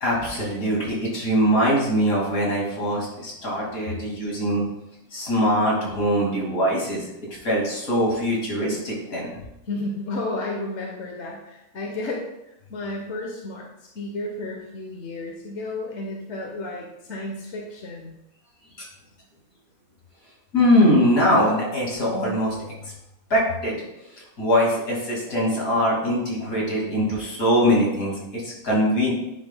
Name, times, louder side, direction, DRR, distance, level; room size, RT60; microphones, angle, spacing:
voice 1, 0.0-4.7 5.1-7.1 7.4-9.3 18.8-18.9 20.5-22.6 23.3-23.8 24.1-29.1, equal, 75° left, -4 dB, 2.8 m, -22 dB
voice 2, 9.6-18.2, left 2 dB, 55° left, -1 dB, 1.3 m, -32 dB
9.7 x 5.8 x 2.2 m, 0.87 s
omnidirectional pair, 1.5 m